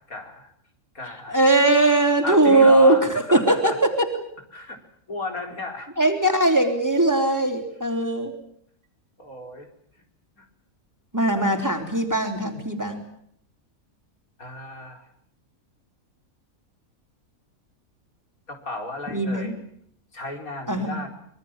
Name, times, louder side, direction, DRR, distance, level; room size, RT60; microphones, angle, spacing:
voice 1, 0.1-0.5 0.9-1.5 2.2-3.8 4.5-4.8 5.1-5.9 9.2-9.7 10.4-10.5 11.3-11.6 14.4-15.1 18.5-19.6 20.1-21.1, left 2 dB, 75° left, 4 dB, 4.8 m, -34 dB
voice 2, 1.3-4.1 6.0-8.3 11.1-13.0 19.1-19.5 20.7-21.0, right 2 dB, 10° right, 5 dB, 3.7 m, -20 dB
25.0 x 23.0 x 7.4 m, 0.68 s
omnidirectional pair, 1.5 m